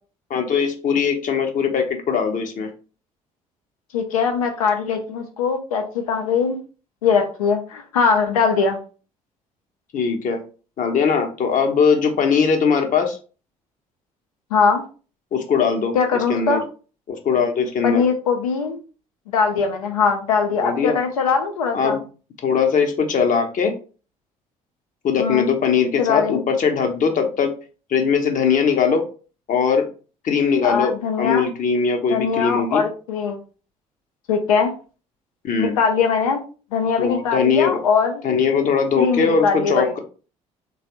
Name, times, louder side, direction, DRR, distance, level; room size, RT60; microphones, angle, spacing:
voice 1, 0.3-2.7 9.9-10.4 10.8-13.2 15.3-15.9 16.3-16.6 17.1-18.0 20.6-21.0 21.7-22.0 22.4-23.7 25.0-27.5 27.9-29.0 29.5-29.9 30.2-32.8 35.4-35.7 37.0-37.8 38.2-40.0, left 6 dB, 50° left, 5 dB, 0.8 m, -20 dB
voice 2, 3.9-6.6 7.0-8.8 14.5-14.8 15.9-16.6 17.8-18.8 19.3-22.0 25.2-25.5 26.0-26.4 30.6-31.5 32.1-33.4 34.3-34.7 35.6-36.4 36.7-38.2 39.0-39.9, left 5 dB, 85° left, 5 dB, 0.6 m, -21 dB
3.2 x 2.3 x 2.9 m, 0.37 s
hypercardioid pair, 50°, 18 cm